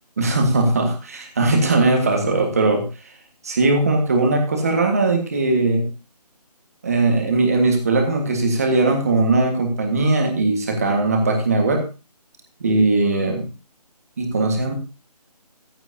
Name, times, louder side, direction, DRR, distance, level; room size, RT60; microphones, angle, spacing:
voice 1, 0.2-2.9 3.4-5.9 6.8-11.8 12.6-13.5 14.2-14.7, right 2 dB, 25° right, 4 dB, 1.6 m, -19 dB
15.0 x 9.2 x 2.8 m, 0.30 s
figure-of-eight pair, 180°, 21 cm